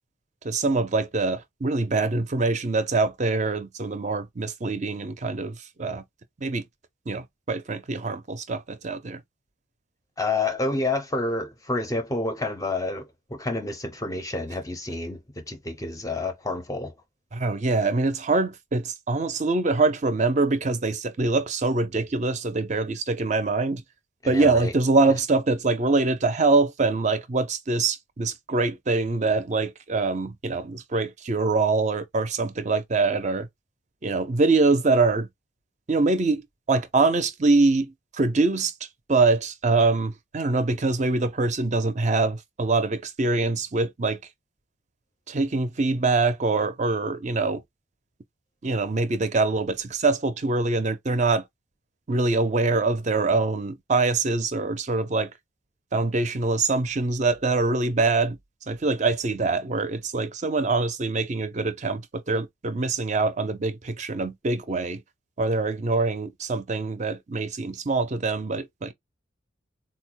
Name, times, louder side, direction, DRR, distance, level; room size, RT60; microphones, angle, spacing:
voice 1, 0.4-6.0 6.4-6.6 7.1-9.2 17.3-23.8 24.3-33.5 34.0-35.3 35.9-38.7 39.1-44.2 45.3-47.6 48.6-51.4 52.1-55.3 55.9-58.4 58.7-65.0 65.4-68.9, right 3 dB, 35° right, 0.5 m, -24 dB
voice 2, 10.2-16.9 24.2-24.7, left 2 dB, 15° left, 0.5 m, -29 dB
4.0 x 2.1 x 2.9 m
head